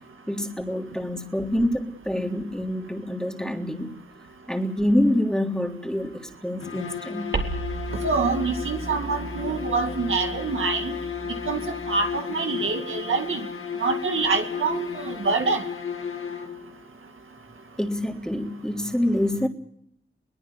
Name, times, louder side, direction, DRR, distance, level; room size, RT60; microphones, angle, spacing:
voice 1, 0.3-4.0 4.5-7.3 17.8-19.5, left 1 dB, 5° left, 2 dB, 3.4 m, -26 dB
sound 1, 6.6-16.8, left 7 dB, 85° left, 1.8 m, -34 dB
sound 2, 7.3-12.2, right 3 dB, 65° right, 3.7 m, -35 dB
voice 2, 8.0-11.0 11.5-11.6 11.9-13.4 13.8-15.6, right 4 dB, 80° right, 5 dB, 2.1 m, -26 dB
22.5 x 18.5 x 8.7 m, 0.71 s
cardioid pair, 60°, 20 cm